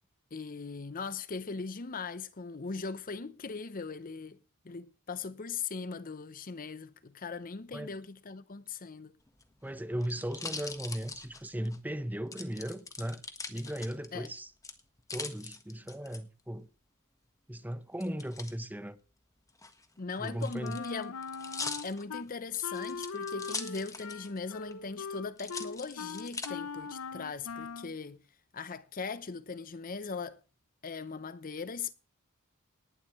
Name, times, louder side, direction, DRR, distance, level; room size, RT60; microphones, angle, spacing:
voice 1, 0.3-4.4 4.6-9.2 14.1-14.3 20.0-21.2 21.8-28.2 28.5-30.4 30.8-31.9, left 5 dB, 40° left, 0.7 m, -39 dB
sound 1, 9.3-11.8 12.3-14.3 14.6-16.2 18.0-18.5 19.5-24.4 24.7-24.8 25.4-26.5 27.1-27.7, left 4 dB, 15° left, 1.3 m, -42 dB
voice 2, 9.6-13.2 13.5-14.5 15.1-16.7 17.5-19.0 20.2-20.8, equal, 10° right, 0.9 m, -37 dB
Wind instrument woodwind instrument, 20.6-22.3 22.6-28.0, left 5 dB, 90° left, 0.7 m, -40 dB
18.5 x 11.5 x 3.1 m
head